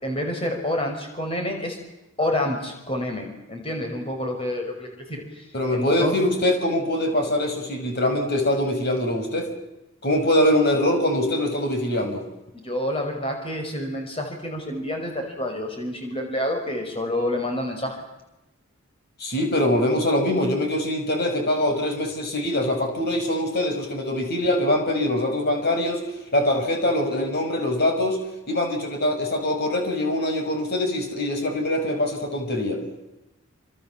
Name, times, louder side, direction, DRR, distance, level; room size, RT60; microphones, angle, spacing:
voice 1, 0.0-1.8 2.2-5.4 5.7-6.1 12.5-18.0, left 1 dB, 25° left, 3 dB, 5.6 m, -28 dB
voice 2, 5.5-9.5 10.0-12.2 19.2-26.0 26.3-28.2 28.5-32.8, left 1 dB, 45° left, 5 dB, 6.0 m, -23 dB
28.0 x 26.0 x 7.6 m, 0.97 s
head